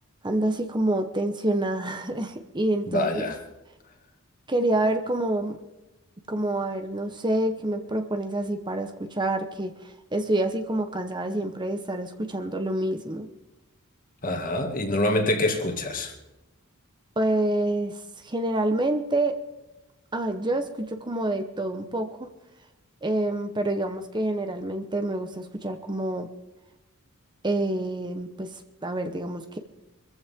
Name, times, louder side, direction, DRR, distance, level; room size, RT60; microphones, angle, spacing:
voice 1, 0.2-3.3 4.5-5.6 6.3-13.3 17.2-19.4 20.1-22.3 23.0-26.3 27.4-29.6, right 1 dB, 20° right, 1.0 m, -27 dB
voice 2, 2.9-3.4 14.2-16.1, left 1 dB, 40° left, 2.2 m, -25 dB
24.0 x 14.5 x 3.7 m
head